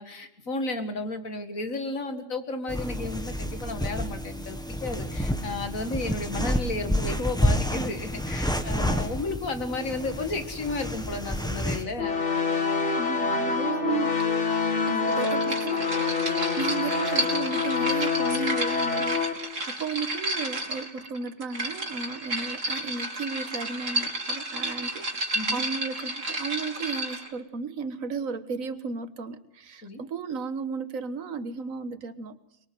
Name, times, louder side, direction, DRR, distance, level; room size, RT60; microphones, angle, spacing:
voice 1, 0.0-12.2 25.3-25.6 29.8-30.0, left 2 dB, 85° left, 7 dB, 2.5 m, -33 dB
sound 1, 2.7-11.8, equal, 5° left, 1.6 m, -29 dB
sound 2, 12.0-19.3, left 5 dB, 60° left, 3.0 m, -26 dB
voice 2, 13.0-16.1 16.6-32.4, right 5 dB, 90° right, 12 dB, 1.7 m, -34 dB
sound 3, 15.1-27.3, right 1 dB, 65° right, 3.4 m, -32 dB
24.5 x 21.5 x 7.8 m, 0.78 s
omnidirectional pair, 1.4 m